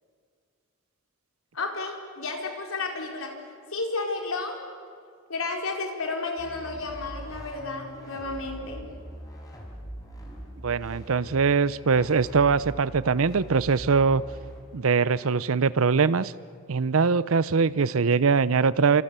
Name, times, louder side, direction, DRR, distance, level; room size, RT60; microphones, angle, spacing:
voice 1, 1.5-3.4 3.7-4.6 5.3-8.9, left 3 dB, 90° left, 2 dB, 4.2 m, -32 dB
sound 1, 6.4-14.6, equal, 20° left, 4.9 m, -42 dB
voice 2, 10.6-14.2 14.7-16.3 16.7-19.0, right 5 dB, 75° right, 18 dB, 0.6 m, -22 dB
29.5 x 26.5 x 6.9 m, 2.1 s
head